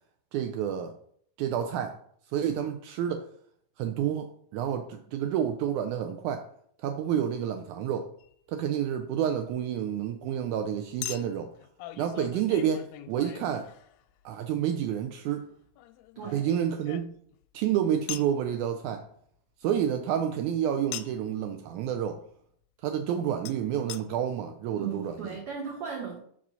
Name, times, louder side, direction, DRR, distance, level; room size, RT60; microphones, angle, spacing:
voice 1, 0.3-1.0 1.4-2.0 2.3-3.3 3.8-6.5 6.8-8.1 8.5-11.5 12.0-13.7 14.3-15.5 16.3-17.1 17.5-19.0 19.6-22.2 22.8-25.4, right 9 dB, 85° right, 1.7 m, -29 dB
Chink clink, 8.2-8.3 11.0-14.2 15.8-17.4 18.1-18.4 20.9-21.3 23.5-23.6 23.9-24.0 24.7-24.8 24.9-25.0, left 13 dB, 90° left, 2.3 m, -41 dB
voice 2, 24.8-26.2, right 6 dB, 65° right, 1.4 m, -36 dB
5.5 x 5.1 x 5.5 m
omnidirectional pair, 3.9 m